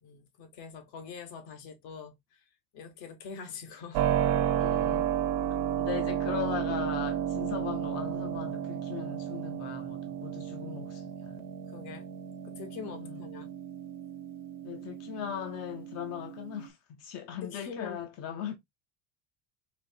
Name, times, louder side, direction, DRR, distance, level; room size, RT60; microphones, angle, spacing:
voice 1, 0.0-2.4 2.7-4.0 4.4-4.6 11.7-12.1 12.4-13.5 17.4-18.0, left 5 dB, 60° left, 1.1 m, -44 dB
Keyboard (musical), 3.9-16.7, right 10 dB, 70° right, 0.8 m, -32 dB
voice 2, 4.6-5.1 5.8-11.4 12.9-13.2 14.6-18.5, left 9 dB, 35° left, 0.5 m, -38 dB
4.3 x 2.9 x 2.6 m
cardioid pair, 170°, 43 cm